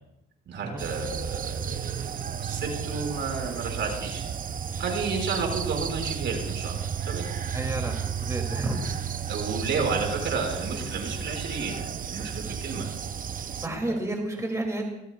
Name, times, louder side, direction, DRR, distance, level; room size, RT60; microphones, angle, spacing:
voice 1, 0.5-4.2 4.8-6.8 7.0-7.3 9.3-11.8 12.1-12.9 13.6-14.0, right 4 dB, 65° right, 1 dB, 5.6 m, -31 dB
sound 1, 0.8-13.7, right 8 dB, 45° right, 0.8 m, -33 dB
voice 2, 7.5-8.8 13.5-14.8, right 2 dB, 15° right, 1 dB, 2.7 m, -31 dB
21.0 x 20.5 x 2.4 m, 0.88 s
cardioid pair, 90°, 20 cm